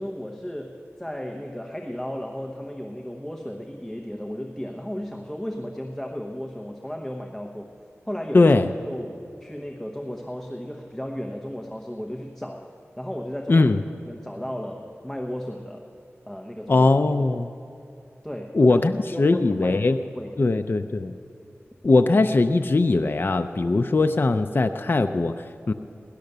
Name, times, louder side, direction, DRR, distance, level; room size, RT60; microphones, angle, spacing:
voice 1, 0.0-7.7 8.0-8.5 8.9-13.7 14.0-15.9 16.3-16.9 18.2-18.8 19.1-19.8 20.2-20.4, equal, 5° left, 1 dB, 0.9 m, -34 dB
voice 2, 8.3-8.7 13.5-13.8 16.7-17.5 18.5-18.9 19.2-20.0 20.4-21.1 21.8-25.7, left 3 dB, 45° left, 7 dB, 0.5 m, -20 dB
17.0 x 11.5 x 6.7 m, 2.7 s
wide cardioid pair, 80°, 5 cm